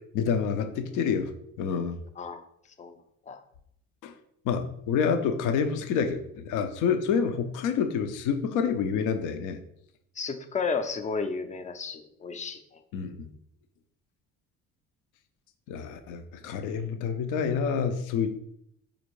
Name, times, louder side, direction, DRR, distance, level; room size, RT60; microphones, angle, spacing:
voice 1, 0.1-1.3 1.6-2.0 4.0-4.1 4.4-9.6 12.9-13.3 15.7-18.4, left 6 dB, 70° left, 8 dB, 0.6 m, -28 dB
voice 2, 10.2-12.8, left 5 dB, 25° left, 8 dB, 0.4 m, -33 dB
4.2 x 2.6 x 3.0 m, 0.73 s
supercardioid pair, 70°, 32 cm